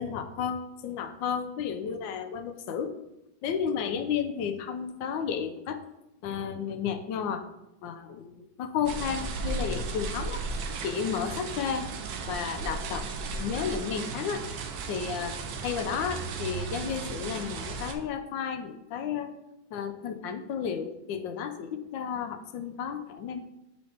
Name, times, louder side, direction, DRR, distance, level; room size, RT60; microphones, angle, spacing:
voice 1, 0.0-2.9 3.4-5.8 6.2-7.5 7.8-10.4 10.8-11.9 12.3-13.1 13.4-14.5 14.9-19.3 19.7-23.4, left 7 dB, 85° left, 9 dB, 1.3 m, -32 dB
sound 1, 8.9-17.9, right 4 dB, 65° right, 1.0 m, -35 dB
9.4 x 4.1 x 3.3 m, 0.90 s
omnidirectional pair, 2.0 m